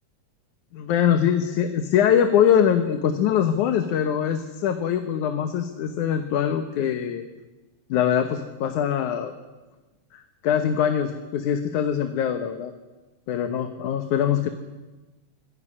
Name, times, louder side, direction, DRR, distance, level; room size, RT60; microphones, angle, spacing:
voice 1, 0.7-7.3 7.9-9.3 10.1-12.7 13.3-14.5, left 9 dB, 75° left, 8 dB, 2.6 m, -23 dB
25.5 x 18.0 x 9.9 m, 1.2 s
omnidirectional pair, 3.5 m